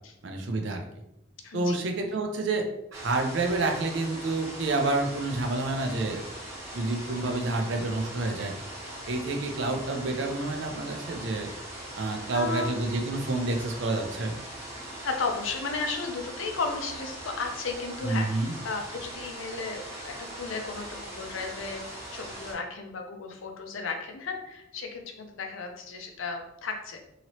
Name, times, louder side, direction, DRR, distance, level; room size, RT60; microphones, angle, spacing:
voice 1, 0.2-0.8 1.5-6.2 6.7-8.5 9.1-11.5 12.0-14.4 18.0-18.6, right 2 dB, 60° right, 3 dB, 0.5 m, -29 dB
voice 2, 1.4-1.8 12.3-12.8 14.8-21.8 22.1-27.0, left 4 dB, 70° left, 4 dB, 0.5 m, -34 dB
sound 1, 2.9-22.5, right 1 dB, 15° right, 0.8 m, -41 dB
2.9 x 2.8 x 2.9 m, 0.86 s
head